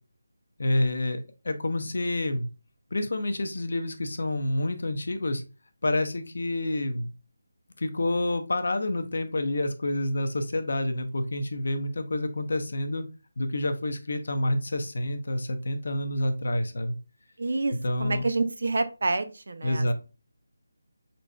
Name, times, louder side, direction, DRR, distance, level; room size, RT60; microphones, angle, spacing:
voice 1, 0.6-2.5 2.9-5.4 5.8-7.1 7.8-13.0 13.4-16.9 17.7-18.2 19.6-19.9, left 1 dB, 60° left, 7 dB, 0.8 m, -28 dB
voice 2, 17.4-17.7 18.0-19.9, right 3 dB, 60° right, 11 dB, 0.6 m, -28 dB
4.6 x 4.0 x 2.2 m, 0.31 s
figure-of-eight pair, 160°, 0 cm